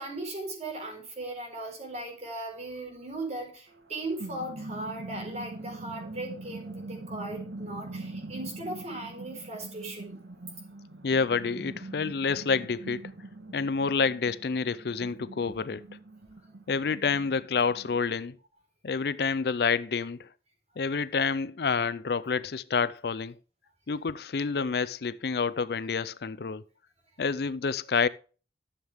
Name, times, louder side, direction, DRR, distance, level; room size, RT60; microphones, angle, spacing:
voice 1, 0.0-10.2, right 2 dB, 40° right, 4.2 m, -38 dB
sound 1, 3.7-18.0, right 2 dB, 80° right, 1.4 m, -43 dB
voice 2, 11.0-13.0 13.5-15.8 16.7-18.4 18.8-20.3 20.8-23.3 23.9-26.6 27.2-28.1, left 5 dB, 65° left, 0.5 m, -28 dB
12.5 x 7.3 x 3.5 m
head